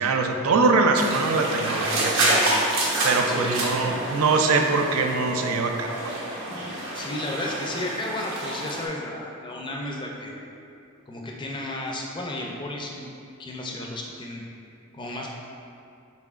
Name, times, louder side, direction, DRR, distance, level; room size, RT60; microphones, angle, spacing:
voice 1, 0.0-2.5 3.0-6.0, right 3 dB, 80° right, 4 dB, 0.4 m, -23 dB
sound 1, 1.0-8.9, right 1 dB, 60° right, 0.9 m, -28 dB
voice 2, 3.3-3.7 6.7-10.4 11.1-13.1 13.4-14.4 14.9-15.3, left 1 dB, 20° left, -1 dB, 0.4 m, -33 dB
5.7 x 3.8 x 2.4 m, 2.6 s
head